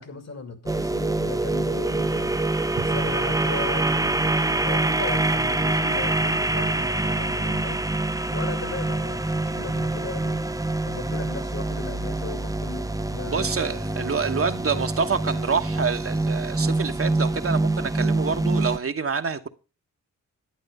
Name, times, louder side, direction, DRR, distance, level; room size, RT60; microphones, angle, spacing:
voice 1, 0.0-2.4 2.7-7.8 8.3-10.4 10.8-13.8, left 4 dB, 50° left, 2.6 m, -37 dB
sound 1, 0.7-18.8, right 2 dB, 10° right, 0.7 m, -25 dB
voice 2, 13.3-19.5, right 5 dB, 45° right, 1.1 m, -27 dB
11.5 x 8.8 x 5.4 m
cardioid pair, 60°, 33 cm